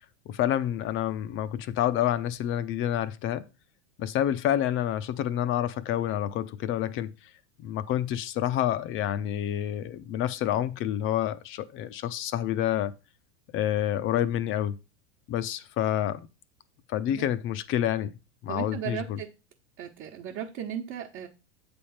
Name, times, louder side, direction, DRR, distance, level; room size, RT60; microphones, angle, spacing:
voice 1, 0.3-3.5 4.0-7.1 7.6-12.9 13.5-14.8 15.3-16.3 16.9-18.1 18.4-19.2, left 11 dB, 35° left, 0.6 m, -28 dB
voice 2, 18.5-19.3 19.8-21.3, right 9 dB, 45° right, 1.2 m, -36 dB
8.4 x 3.5 x 5.7 m
hypercardioid pair, 105°, 35 cm